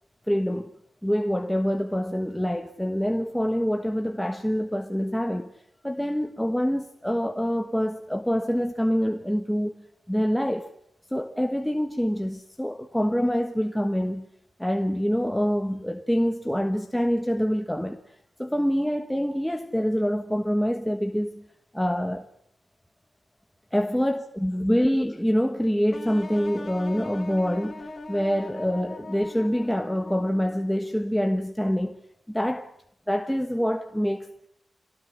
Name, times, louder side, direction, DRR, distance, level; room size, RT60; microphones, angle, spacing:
voice 1, 0.3-0.7 1.0-5.5 5.8-10.7 11.1-14.3 14.6-21.5 21.7-22.3 23.7-32.0 32.3-32.7 33.1-34.5, equal, 5° left, 1.3 m, -26 dB
sound 1, 25.9-30.8, left 3 dB, 40° left, 3.9 m, -40 dB
27.0 x 18.5 x 10.0 m
wide cardioid pair, 135°, 0 cm